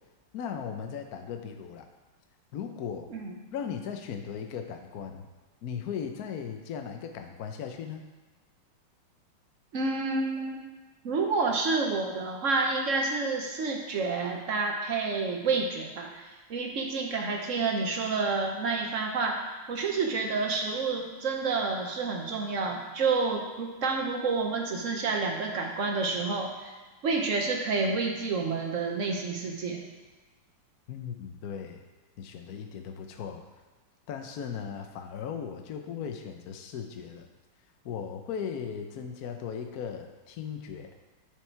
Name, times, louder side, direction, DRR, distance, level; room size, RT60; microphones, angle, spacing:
voice 1, 0.3-1.9 2.5-3.1 3.5-5.3 5.6-8.0 30.9-31.8 32.2-33.5 34.1-37.2 37.8-40.9, left 7 dB, 65° left, 5 dB, 0.9 m, -37 dB
voice 2, 9.7-10.7 11.0-26.7 27.0-29.8, right 4 dB, 55° right, 2 dB, 0.8 m, -29 dB
10.5 x 5.0 x 4.5 m, 1.3 s
omnidirectional pair, 2.3 m